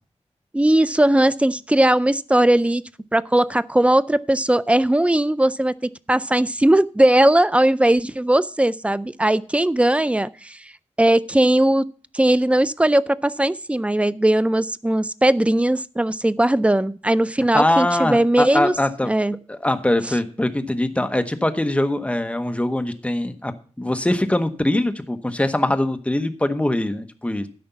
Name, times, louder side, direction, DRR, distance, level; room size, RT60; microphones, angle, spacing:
voice 1, 0.5-2.8 3.1-10.6 11.0-11.9 12.1-18.7 19.0-19.4, right 1 dB, 10° right, 15 dB, 0.4 m, -18 dB
voice 2, 17.5-19.1 19.5-23.5 23.8-27.5, left 1 dB, 10° left, 8 dB, 0.9 m, -22 dB
12.5 x 5.2 x 7.0 m, 0.42 s
wide cardioid pair, 110°, 12 cm